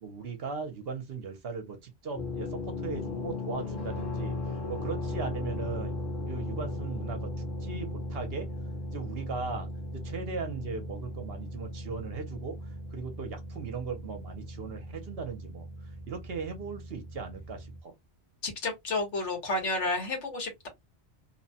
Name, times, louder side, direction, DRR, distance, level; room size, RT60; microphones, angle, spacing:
voice 1, 0.0-4.4 4.7-6.0 6.3-8.5 8.9-9.7 9.9-12.6 12.9-15.7 16.1-17.9, right 5 dB, 60° right, 0.9 m, -38 dB
sound 1, 2.1-17.8, left 2 dB, 45° left, 0.9 m, -37 dB
voice 2, 18.4-20.7, left 2 dB, 75° left, 1.4 m, -31 dB
2.9 x 2.1 x 2.7 m
omnidirectional pair, 1.2 m